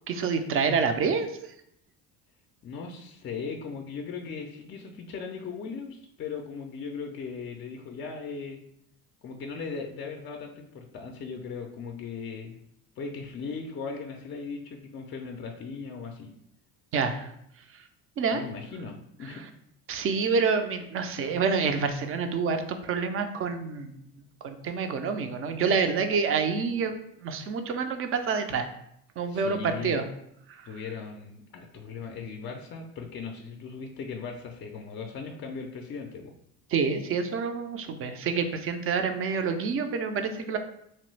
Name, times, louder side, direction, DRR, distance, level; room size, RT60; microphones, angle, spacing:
voice 1, 0.1-1.3 16.9-17.3 18.2-18.4 19.9-24.0 24.4-28.7 29.2-30.1 36.7-40.6, right 5 dB, 35° right, 7 dB, 0.4 m, -27 dB
voice 2, 2.6-8.6 9.2-12.6 13.0-16.3 18.3-19.4 29.3-30.0 30.6-36.3, left 5 dB, 35° left, 2 dB, 0.4 m, -38 dB
3.0 x 2.2 x 3.2 m, 0.75 s
cardioid pair, 110°, 38 cm